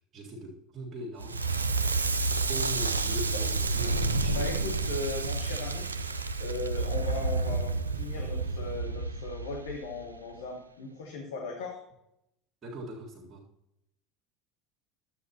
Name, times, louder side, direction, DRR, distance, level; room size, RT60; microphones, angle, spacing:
voice 1, 0.0-1.4 2.5-4.8 12.6-13.5, right 1 dB, 35° right, -4 dB, 1.8 m, -41 dB
Crackle, 1.2-10.2, right 3 dB, 85° right, 0.4 m, -30 dB
voice 2, 4.3-5.9 6.4-11.8, left 3 dB, 65° left, 0 dB, 1.3 m, -38 dB
11.5 x 7.9 x 2.9 m, 0.81 s
figure-of-eight pair, 70°, 0 cm